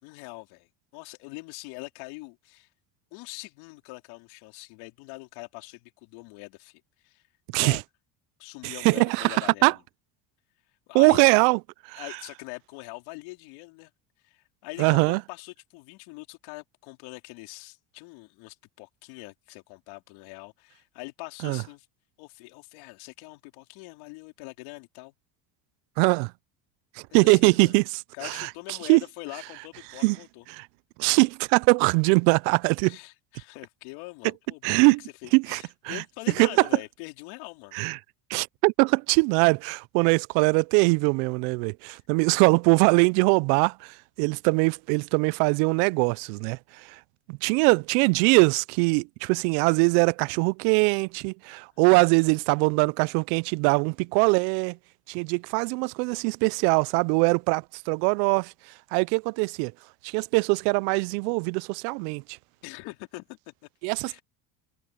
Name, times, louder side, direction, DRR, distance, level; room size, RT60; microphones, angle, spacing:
voice 1, 0.0-2.7 3.1-7.2 7.6-7.8 8.4-9.8 10.9-11.3 12.0-13.9 14.2-21.9 22.2-25.1 27.1-27.7 28.1-30.4 32.8-37.7 42.3-42.4 48.2-48.4 51.8-52.1 62.6-63.7 64.0-64.2, left 25 dB, 80° left, 4.0 m, -43 dB
voice 2, 8.6-9.7 10.9-11.6 11.9-12.0 14.8-15.2 21.4-21.6 26.0-26.3 27.1-27.8 28.2-28.5 28.9-29.0 30.0-30.2 30.5-30.7 31.0-33.0 34.6-35.0 35.3-36.0 36.4-36.6 37.7-38.0 38.3-46.6 47.3-54.8 55.1-58.5 58.9-59.7 60.0-62.2 63.8-64.2, right 31 dB, 80° right, 0.6 m, -22 dB
supercardioid pair, 95°, 48 cm